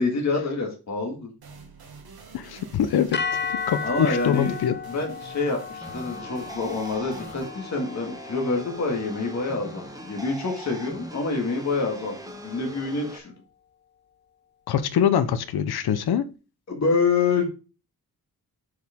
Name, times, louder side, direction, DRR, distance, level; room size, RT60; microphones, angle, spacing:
voice 1, 0.0-1.3 3.8-4.6 4.9-13.3 16.7-17.4, left 4 dB, 45° left, 2.0 m, -27 dB
sound 1, 1.4-8.9, right 4 dB, 80° right, 1.8 m, -48 dB
voice 2, 2.3-3.2 3.5-4.8 14.7-16.3, left 9 dB, 90° left, 0.8 m, -24 dB
sound 2, 3.1-11.4, left 5 dB, 30° left, 0.5 m, -35 dB
sound 3, 5.8-13.2, right 1 dB, 10° right, 1.1 m, -41 dB
7.7 x 4.8 x 3.6 m
wide cardioid pair, 135°, 37 cm